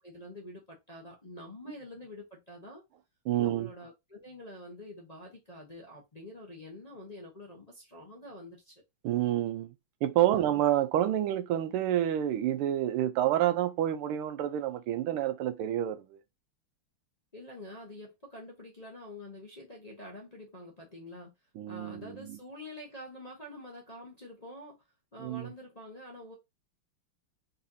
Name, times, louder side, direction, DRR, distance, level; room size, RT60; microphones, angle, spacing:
voice 1, 0.0-2.8 3.4-8.8 10.3-10.5 17.3-21.3 21.7-24.8 25.1-26.3, left 1 dB, 30° left, 0.8 m, -47 dB
voice 2, 3.3-3.7 9.0-9.7 10.0-16.2 21.5-22.4 25.2-25.5, right 12 dB, 90° right, 1.6 m, -28 dB
4.1 x 4.0 x 2.7 m
omnidirectional pair, 2.4 m